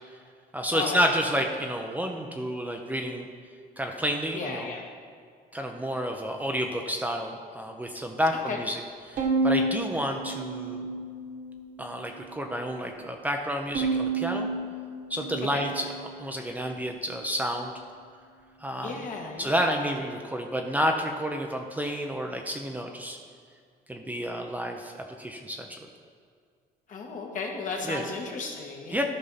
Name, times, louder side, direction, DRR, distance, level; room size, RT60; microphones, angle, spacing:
voice 1, 0.5-3.3 3.8-4.7 5.5-8.8 9.1-10.9 11.8-14.5 15.1-15.9 16.2-17.7 18.6-19.0 19.4-23.2 23.9-25.8 27.9-28.1 28.9-29.0, equal, 10° right, 2 dB, 0.7 m, -30 dB
voice 2, 4.3-4.9 8.3-8.6 15.5-15.6 18.8-19.7 26.9-29.0, left 4 dB, 50° left, 0 dB, 1.7 m, -35 dB
Bowed string instrument, 9.2-11.5 12.0-12.8 13.7-16.3, right 3 dB, 50° right, 1.5 m, -30 dB
13.5 x 5.4 x 4.1 m, 2.2 s
cardioid pair, 110°, 17 cm